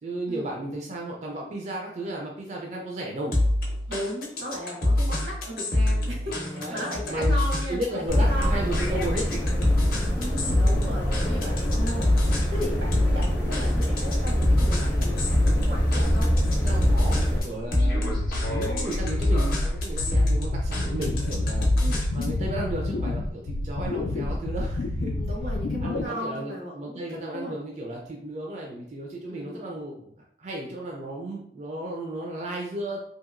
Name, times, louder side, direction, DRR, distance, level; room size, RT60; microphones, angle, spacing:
voice 1, 0.0-3.4 6.5-6.8 7.1-7.4 7.7-9.9 12.9-13.1 16.6-21.7 22.1-25.2 25.8-33.0, right 1 dB, 40° right, -1 dB, 0.4 m, -34 dB
sound 1, 3.3-22.4, left 1 dB, 55° left, 0.6 m, -26 dB
voice 2, 3.9-8.6 10.1-12.1 12.5-16.3 17.8-18.0 21.8-22.0 25.1-27.0 27.3-27.5 29.3-29.7, equal, 90° right, -2 dB, 1.1 m, -36 dB
sound 2, 8.1-17.4, equal, 10° left, 0.5 m, -25 dB
sound 3, 16.3-26.1, left 2 dB, 90° left, 0.3 m, -29 dB
2.8 x 2.7 x 2.4 m, 0.69 s
head